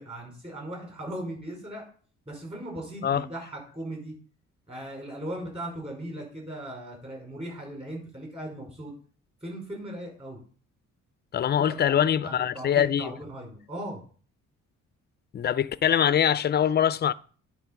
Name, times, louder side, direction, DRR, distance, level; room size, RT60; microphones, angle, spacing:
voice 1, 0.0-1.8 2.3-4.1 4.7-8.9 9.4-10.4 11.4-14.0, right 1 dB, 20° right, 5.1 m, -38 dB
voice 2, 11.3-13.1 15.3-17.1, left 9 dB, 35° left, 0.4 m, -23 dB
10.5 x 3.8 x 5.9 m
cardioid pair, 105°, 31 cm